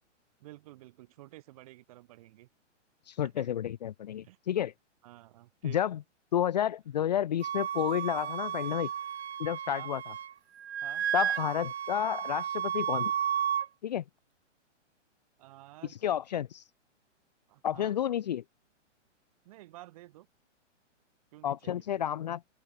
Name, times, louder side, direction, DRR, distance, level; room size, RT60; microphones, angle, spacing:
voice 1, 0.4-2.5 3.2-3.5 4.2-4.4 5.0-5.8 9.7-9.9 10.8-11.1 15.4-16.0 17.5-18.0 19.4-20.3 21.3-22.0, right 17 dB, 30° right, 6.4 m, -51 dB
voice 2, 3.1-4.7 5.6-6.0 6.3-8.9 9.4-10.0 11.1-13.1 13.8-14.0 15.9-16.6 17.6-18.4 21.4-22.4, left 10 dB, 35° left, 1.0 m, -31 dB
Wind instrument woodwind instrument, 7.4-10.3 10.6-13.7, right 9 dB, 60° right, 2.1 m, -33 dB
open air
hypercardioid pair, 175°, 37 cm